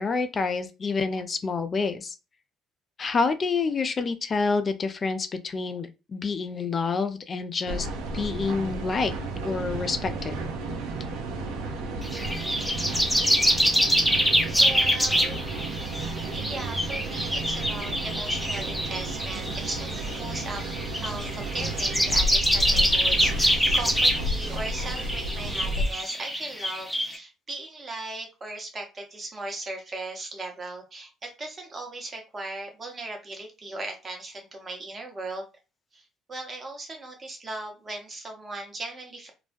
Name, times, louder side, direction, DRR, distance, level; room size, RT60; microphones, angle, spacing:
voice 1, 0.0-2.2 3.0-7.9 8.1-9.1 9.4-10.4, left 4 dB, 40° left, 0.4 m, -28 dB
sound 1, 7.7-25.9, right 1 dB, 70° right, 0.5 m, -32 dB
sound 2, 12.0-27.2, equal, 5° left, 0.7 m, -25 dB
voice 2, 14.6-15.4 16.3-20.7 21.0-35.4 35.9-39.3, right 2 dB, 35° right, 0.9 m, -37 dB
2.3 x 2.1 x 2.5 m
hypercardioid pair, 55°, 0 cm